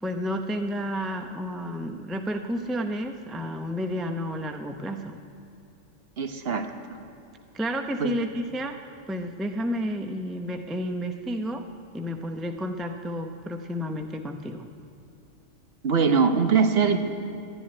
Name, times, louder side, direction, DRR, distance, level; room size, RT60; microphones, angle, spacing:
voice 1, 0.0-5.2 7.5-8.8 9.1-11.6 11.9-14.7, equal, ahead, 5 dB, 0.5 m, -31 dB
voice 2, 6.2-6.7 8.0-8.2 15.8-17.0, right 5 dB, 55° right, 6 dB, 1.1 m, -22 dB
12.5 x 11.0 x 9.8 m, 2.6 s
omnidirectional pair, 1.3 m